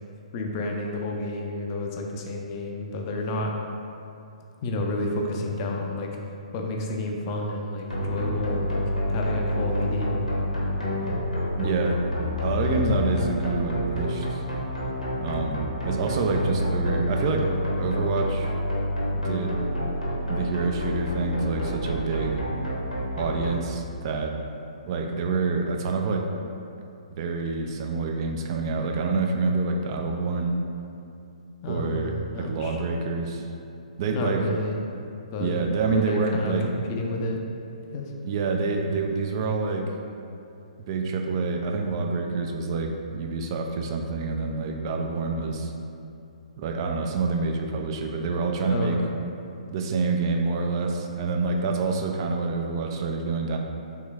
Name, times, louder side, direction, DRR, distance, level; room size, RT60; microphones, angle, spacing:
voice 1, 0.3-3.5 4.6-6.1 6.5-8.8 9.1-10.2 11.0-11.3 31.6-32.8 34.1-34.8 35.3-35.5 35.8-37.4 37.9-38.1 48.7-49.1, left 2 dB, 35° left, 0 dB, 0.4 m, -30 dB
sound 1, 7.9-23.5, left 1 dB, 90° left, 0.8 m, -28 dB
voice 2, 11.6-12.1 12.4-14.4 15.2-17.5 17.8-18.6 19.1-19.6 20.3-22.4 23.2-24.4 24.9-26.3 27.1-30.5 31.6-33.5 34.0-34.4 35.4-36.7 38.2-39.9 40.8-45.7 46.6-49.0 49.7-53.6, right 4 dB, 40° right, 2 dB, 0.3 m, -27 dB
3.2 x 3.0 x 2.2 m, 2.7 s
figure-of-eight pair, 125°, 4 cm